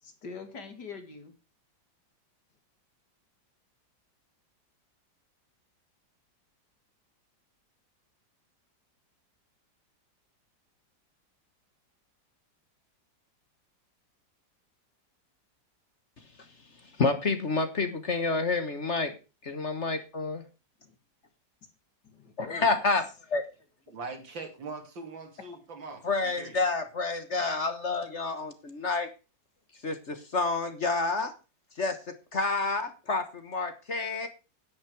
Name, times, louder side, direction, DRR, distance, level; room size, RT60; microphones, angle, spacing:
voice 1, 0.0-1.3 20.9-21.0 22.0-22.8, left 4 dB, 60° left, 7 dB, 2.6 m, -43 dB
voice 2, 17.0-19.1 19.4-20.4 22.4-23.4 26.0-29.1 29.8-31.3 31.8-34.3, left 3 dB, 40° left, 9 dB, 1.4 m, -29 dB
voice 3, 23.9-26.5, right 4 dB, 80° right, 5 dB, 3.3 m, -41 dB
10.5 x 8.9 x 4.8 m, 0.31 s
omnidirectional pair, 2.0 m